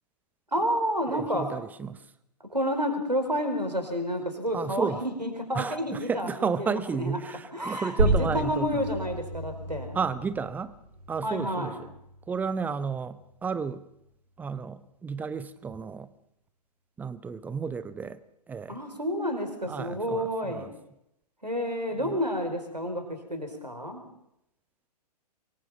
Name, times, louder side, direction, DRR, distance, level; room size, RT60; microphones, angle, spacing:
voice 1, 0.5-1.5 2.5-7.2 7.5-10.0 11.2-11.8 18.7-20.7 21.4-24.0, equal, 90° right, 6 dB, 5.0 m, -30 dB
voice 2, 1.1-2.0 4.5-5.0 5.5-8.9 9.9-10.7 11.1-11.9 12.3-13.8 14.4-16.1 17.0-18.2 18.5-18.8 19.7-20.7 22.0-22.2, right 5 dB, 10° right, 16 dB, 0.8 m, -32 dB
sound 1, 8.0-13.1, right 2 dB, 65° right, 6.9 m, -31 dB
24.5 x 22.0 x 5.9 m, 0.80 s
figure-of-eight pair, 115°, 21 cm